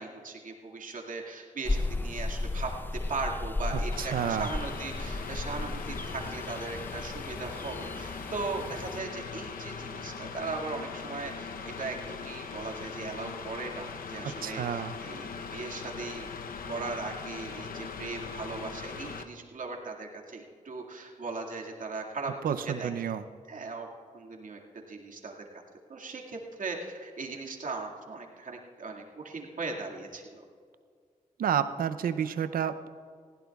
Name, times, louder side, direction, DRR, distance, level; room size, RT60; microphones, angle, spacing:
voice 1, 0.0-2.7 3.1-16.3 16.7-22.9 23.5-23.9 24.1-25.3 25.9-30.4, right 3 dB, 65° right, 0 dB, 2.1 m, -38 dB
sound 1, 1.6-9.0, left 2 dB, 15° left, 0.3 m, -35 dB
Mechanical fan, 3.9-19.2, left 5 dB, 80° left, 0.8 m, -40 dB
voice 2, 4.0-4.5 14.2-14.9 22.4-23.2 31.4-32.9, right 8 dB, 90° right, 12 dB, 0.6 m, -30 dB
20.0 x 15.5 x 2.3 m, 2.1 s
cardioid pair, 60°, 15 cm